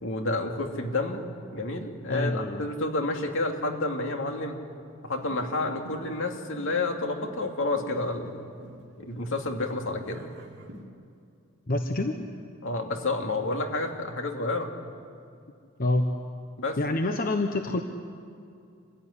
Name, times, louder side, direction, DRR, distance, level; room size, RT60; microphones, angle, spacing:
voice 1, 0.0-4.6 5.0-8.4 9.0-10.3 12.6-14.7 16.6-16.8, left 2 dB, 65° left, 3 dB, 2.6 m, -30 dB
voice 2, 2.1-2.7 11.7-12.2 15.8-16.1 16.8-17.8, left 2 dB, 45° left, 5 dB, 1.1 m, -27 dB
sound 1, 5.2-10.9, equal, 60° right, 2.7 m, -49 dB
27.0 x 15.5 x 10.0 m, 2.5 s
head